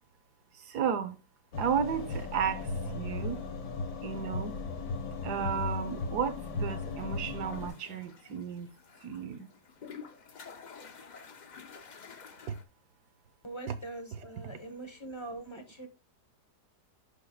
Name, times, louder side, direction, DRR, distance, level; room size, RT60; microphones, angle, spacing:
voice 1, 0.6-1.2 1.6-3.4 4.0-4.6 5.2-8.7 9.0-9.5 12.5-12.6 13.7-13.8 14.1-14.6, right 7 dB, 70° right, 1.4 m, -33 dB
sound 1, 1.5-7.7, left 3 dB, 80° left, 2.0 m, -36 dB
sound 2, 5.1-12.6, left 6 dB, 60° left, 0.4 m, -51 dB
voice 2, 13.4-15.9, right 2 dB, 20° left, 0.9 m, -43 dB
11.5 x 4.7 x 2.3 m
omnidirectional pair, 1.8 m